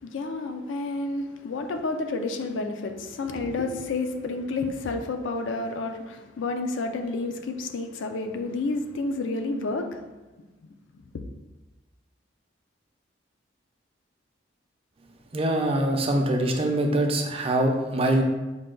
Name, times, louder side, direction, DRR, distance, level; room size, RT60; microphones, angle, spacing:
voice 1, 0.0-10.0, left 3 dB, 80° left, 0.4 m, -30 dB
voice 2, 15.3-18.2, right 1 dB, 30° right, 0.5 m, -23 dB
5.4 x 2.3 x 3.7 m
head